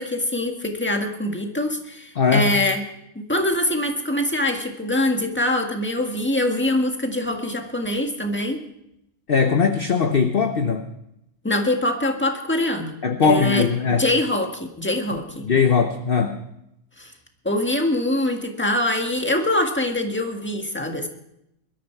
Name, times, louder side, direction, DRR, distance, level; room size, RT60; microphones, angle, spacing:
voice 1, 0.0-2.8 3.3-8.6 11.4-13.7 14.0-15.5 17.0-17.1 17.4-21.1, left 1 dB, 10° left, 3 dB, 1.7 m, -24 dB
voice 2, 2.2-2.5 9.3-10.8 13.0-14.1 15.4-16.4, left 5 dB, 45° left, 7 dB, 1.0 m, -19 dB
21.0 x 13.5 x 4.6 m, 0.80 s
omnidirectional pair, 1.5 m